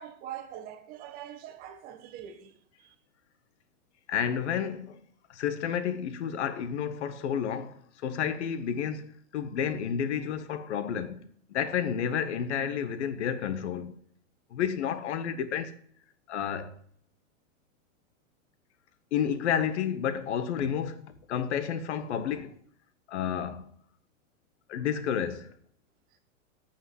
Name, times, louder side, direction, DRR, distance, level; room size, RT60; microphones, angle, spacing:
voice 1, 0.0-2.9, right 10 dB, 20° right, 1.4 m, -43 dB
voice 2, 4.1-5.0 5.3-11.2 11.5-13.9 14.5-15.7 16.3-16.8 19.1-22.5 23.1-23.7 24.7-25.5, left 8 dB, 55° left, 1.4 m, -31 dB
9.0 x 8.8 x 7.8 m
supercardioid pair, 170°, 41 cm